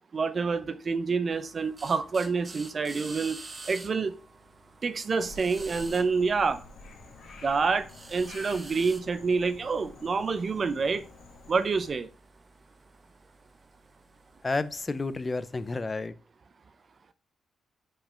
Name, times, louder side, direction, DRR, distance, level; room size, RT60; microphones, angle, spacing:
voice 1, 0.1-3.4 3.7-4.1 4.8-6.6 7.4-11.0 11.5-12.1, right 4 dB, 40° right, 0.6 m, -27 dB
sound 1, 1.3-15.8, right 2 dB, 25° right, 1.1 m, -49 dB
Frog, 5.2-11.9, left 3 dB, 70° left, 1.6 m, -49 dB
voice 2, 14.4-16.1, left 3 dB, 25° left, 0.6 m, -31 dB
5.7 x 5.3 x 5.1 m
cardioid pair, 105°, 0 cm